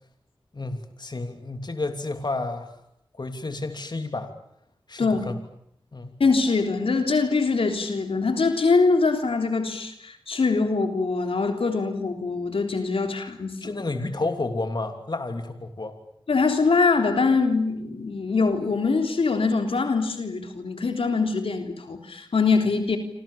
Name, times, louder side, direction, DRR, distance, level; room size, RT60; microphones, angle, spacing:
voice 1, 0.5-2.7 3.1-4.3 4.9-5.4 5.9-6.2 13.6-16.0, left 2 dB, 50° left, 6 dB, 3.1 m, -31 dB
voice 2, 6.2-13.7 16.3-23.0, left 4 dB, 80° left, 5 dB, 3.6 m, -23 dB
27.5 x 27.0 x 7.2 m, 0.72 s
cardioid pair, 50°, 9 cm